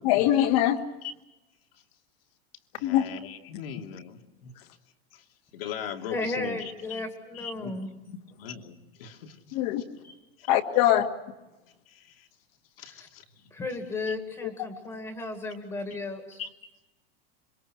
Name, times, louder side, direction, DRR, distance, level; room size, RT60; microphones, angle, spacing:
voice 1, 0.0-0.8 2.8-3.0 9.5-9.8 10.5-11.1, left 12 dB, 40° left, 8 dB, 1.9 m, -22 dB
voice 2, 2.8-4.2 5.5-6.6 6.9-7.0 7.3-7.9 8.4-9.6 10.4-10.5 12.8-13.2 16.4-16.5, left 8 dB, 70° left, 4 dB, 2.8 m, -39 dB
voice 3, 6.1-7.9 10.0-10.2 12.8-13.1 13.5-16.4, left 2 dB, 10° left, 5 dB, 1.9 m, -34 dB
26.5 x 24.0 x 6.2 m, 1.0 s
supercardioid pair, 175°, 30 cm